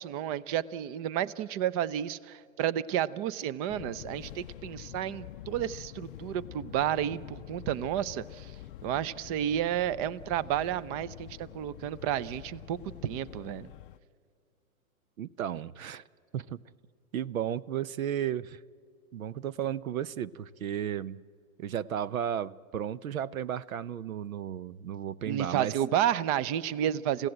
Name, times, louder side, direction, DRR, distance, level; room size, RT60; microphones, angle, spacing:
voice 1, 0.0-8.5 8.8-13.7 25.3-27.3, right 11 dB, 25° right, 19 dB, 0.6 m, -31 dB
Fixed-wing aircraft airplane, 3.7-14.0, left 14 dB, 40° left, 0.5 m, -46 dB
voice 2, 15.2-16.0 16.3-16.6 17.1-18.6 19.1-21.2 21.6-25.7, right 10 dB, 75° right, 20 dB, 0.8 m, -34 dB
28.5 x 16.0 x 8.7 m, 2.2 s
hypercardioid pair, 130°, 42 cm